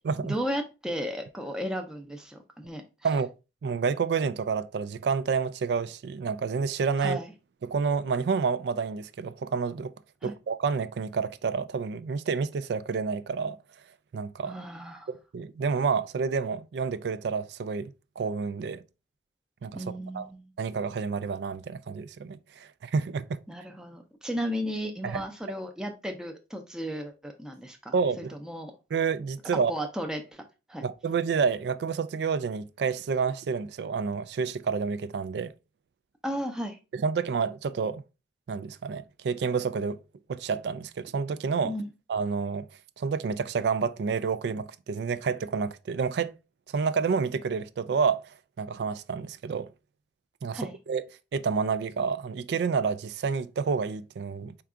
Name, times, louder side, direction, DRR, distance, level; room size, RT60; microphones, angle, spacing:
voice 1, 0.2-3.1 7.0-7.3 10.2-10.3 14.5-15.1 19.8-20.5 23.5-28.7 29.7-30.4 30.7-30.8 36.2-36.8 41.6-41.9 50.5-50.8, equal, 5° right, 0.5 m, -34 dB
voice 2, 3.6-7.2 7.6-9.9 10.2-13.6 14.1-14.6 15.1-18.8 19.6-19.8 20.1-20.3 20.6-23.4 25.0-25.2 27.9-28.3 28.9-29.7 30.8-35.5 36.9-38.0 38.5-40.0 40.3-41.7 42.1-42.7 43.0-46.3 46.7-48.2 48.6-49.7 50.4-50.6 50.9-51.0 51.3-54.5, right 5 dB, 65° right, 0.3 m, -29 dB
4.5 x 2.3 x 3.6 m
head